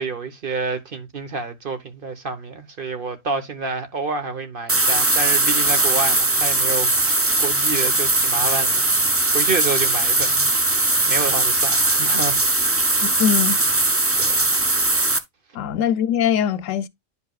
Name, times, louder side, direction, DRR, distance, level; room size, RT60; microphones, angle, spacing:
voice 1, 0.0-8.9 9.3-12.4 14.2-14.4, right 4 dB, 45° right, 1.2 m, -28 dB
sound 1, 4.7-15.2, right 2 dB, 20° right, 0.3 m, -19 dB
voice 2, 13.0-13.6 15.5-16.9, left 9 dB, 75° left, 1.0 m, -21 dB
10.5 x 5.3 x 2.3 m
omnidirectional pair, 1.3 m